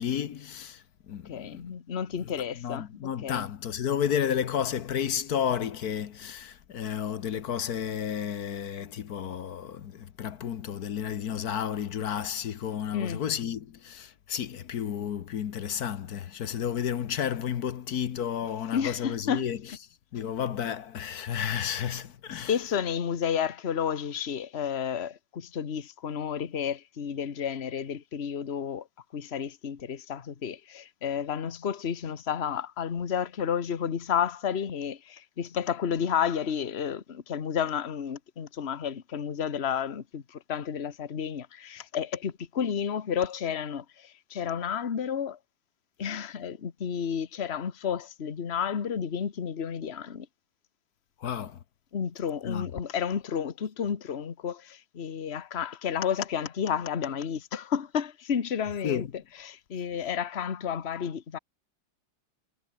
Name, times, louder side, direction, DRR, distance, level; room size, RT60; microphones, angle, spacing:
voice 1, 0.0-1.6 2.1-19.8 20.1-22.5 51.2-51.6 52.4-52.7 58.8-59.1, left 9 dB, 55° left, 1.4 m, -32 dB
voice 2, 1.3-2.9 3.2-3.4 12.9-13.2 18.7-19.5 22.3-28.8 29.1-45.4 46.0-50.3 51.9-59.1 59.4-61.4, left 8 dB, 35° left, 1.4 m, -31 dB
omnidirectional pair, 2.2 m